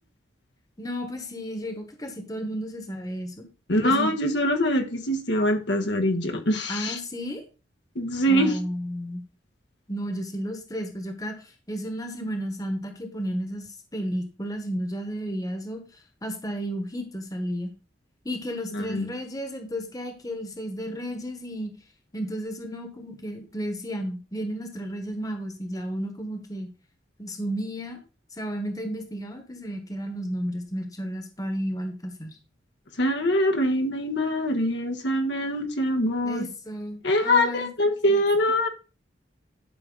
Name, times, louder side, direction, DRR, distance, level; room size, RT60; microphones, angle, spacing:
voice 1, 0.8-3.4 3.8-4.1 6.7-7.4 8.3-9.2 9.9-15.8 16.2-17.7 18.2-21.7 22.1-26.7 27.2-28.0 28.4-32.3 36.2-37.7 38.0-38.2, equal, 20° left, 1.3 m, -33 dB
voice 2, 3.7-7.0 7.9-8.6 18.7-19.1 33.0-36.5 37.0-38.7, left 1 dB, 70° left, 1.3 m, -24 dB
11.5 x 5.8 x 3.9 m
head